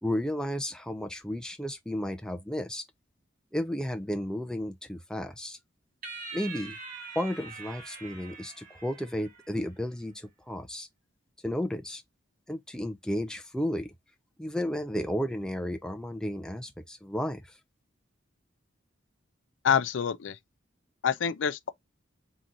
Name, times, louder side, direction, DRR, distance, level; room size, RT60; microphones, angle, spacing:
voice 1, 0.0-2.8 3.5-5.6 6.3-6.8 7.2-10.9 11.4-12.0 12.5-13.9 14.4-17.4, equal, 5° left, 0.5 m, -33 dB
sound 1, 6.0-9.6, right 4 dB, 45° right, 1.5 m, -43 dB
voice 2, 19.6-20.4 21.0-21.7, left 7 dB, 75° left, 0.4 m, -26 dB
3.8 x 2.9 x 3.9 m
head